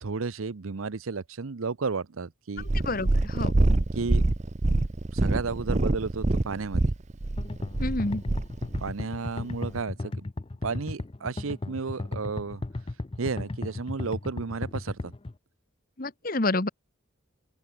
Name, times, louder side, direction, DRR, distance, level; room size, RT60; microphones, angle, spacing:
voice 1, 0.0-2.7 3.9-4.2 5.1-6.9 8.8-10.2 10.6-12.6 13.2-15.1, right 4 dB, 80° right, 0.7 m, -33 dB
Purr, 2.6-8.9 9.6-9.7, right 2 dB, 35° right, 0.6 m, -25 dB
voice 2, 2.8-3.5 7.8-8.2 16.0-16.7, left 2 dB, 45° left, 1.4 m, -28 dB
sound 1, 7.4-15.3, left 2 dB, 25° left, 0.5 m, -35 dB
open air
head